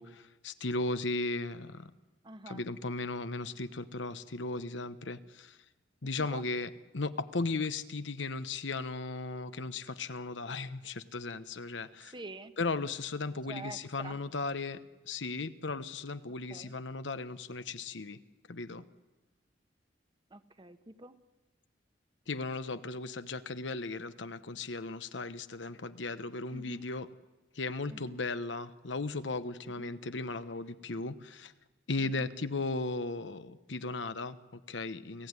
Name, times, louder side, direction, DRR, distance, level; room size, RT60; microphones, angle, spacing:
voice 1, 0.0-1.9 2.5-5.6 6.0-12.1 12.6-18.2 18.5-18.8 22.3-27.1 27.5-31.5 31.9-35.3, left 3 dB, 85° left, 12 dB, 1.0 m, -36 dB
voice 2, 2.2-2.7 6.2-6.5 12.1-12.6 13.5-14.2 16.5-16.7 20.3-21.2 26.5-26.9 27.9-28.2 29.6-29.9 32.0-32.3, right 2 dB, 25° right, 10 dB, 1.2 m, -47 dB
29.5 x 15.5 x 9.7 m, 1.2 s
head